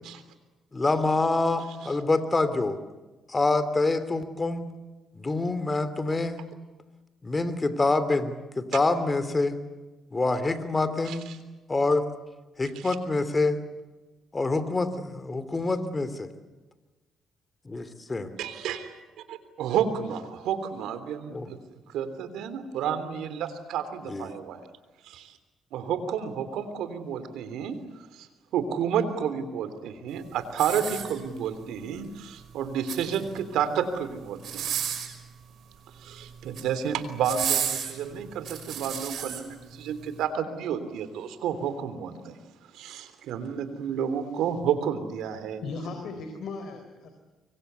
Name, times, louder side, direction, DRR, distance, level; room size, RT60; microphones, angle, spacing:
voice 1, 0.7-2.8 3.3-4.7 5.2-6.4 7.2-9.6 10.1-11.3 11.7-12.0 12.6-13.6 14.3-16.3 17.6-18.3 21.3-21.5 24.1-24.3, left 3 dB, 25° left, 12 dB, 2.9 m, -26 dB
voice 2, 11.1-11.4 12.7-12.9 18.4-18.9 19.3-21.6 21.9-24.6 25.0-25.3 25.7-27.7 28.1-28.3 28.5-34.8 36.0-42.4 42.7-45.6, right 8 dB, 85° right, 11 dB, 3.3 m, -31 dB
sound 1, 30.5-31.5 32.6-33.4 34.4-35.2 36.3-36.7 37.2-39.4 40.0-40.1, right 9 dB, 70° right, 5.3 m, -32 dB
voice 3, 45.6-47.1, left 4 dB, 70° left, 6 dB, 4.2 m, -37 dB
25.5 x 23.5 x 8.2 m, 1.2 s
cardioid pair, 90°, 0 cm